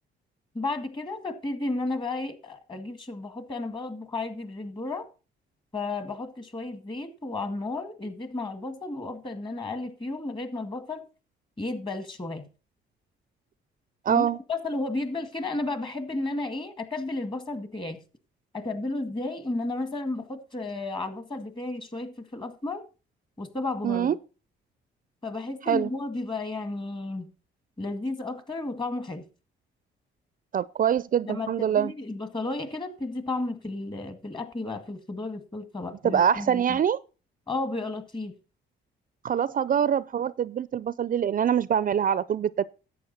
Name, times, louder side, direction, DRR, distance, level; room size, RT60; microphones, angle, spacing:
voice 1, 0.5-5.1 5.7-11.1 11.6-12.4 14.1-18.0 18.5-22.8 23.4-24.2 25.2-27.3 27.8-29.3 31.2-36.8 37.5-38.3, left 2 dB, 25° left, 1.9 m, -33 dB
voice 2, 14.0-14.4 23.8-24.1 25.7-25.9 30.5-31.9 36.0-37.0 39.2-42.6, right 9 dB, 45° right, 0.5 m, -24 dB
11.0 x 8.2 x 4.1 m
cardioid pair, 90°, 20 cm